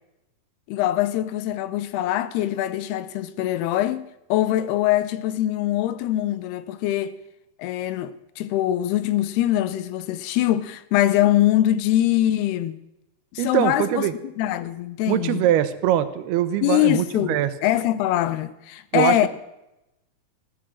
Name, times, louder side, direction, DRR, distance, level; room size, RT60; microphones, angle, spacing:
voice 1, 0.7-7.2 7.6-12.8 13.3-14.1 14.4-15.4 16.6-19.3, left 13 dB, 85° left, 2.8 m, -23 dB
voice 2, 13.4-14.1 15.1-17.5 18.9-19.3, right 12 dB, 80° right, 2.8 m, -22 dB
15.0 x 12.5 x 6.3 m
omnidirectional pair, 4.6 m